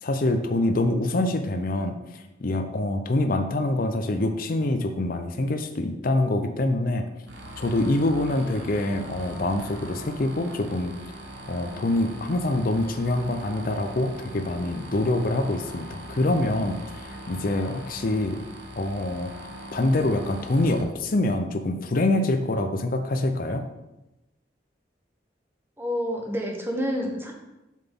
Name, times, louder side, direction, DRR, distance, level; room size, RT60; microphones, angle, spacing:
voice 1, 0.0-7.1 7.6-10.9 11.5-18.4 18.8-19.3 19.7-23.7, left 2 dB, 50° left, 7 dB, 0.6 m, -25 dB
sound 1, 7.3-20.8, right 1 dB, 90° right, 1.2 m, -41 dB
voice 2, 25.8-27.3, equal, 15° right, 1 dB, 1.1 m, -28 dB
7.3 x 5.8 x 3.6 m, 0.96 s
head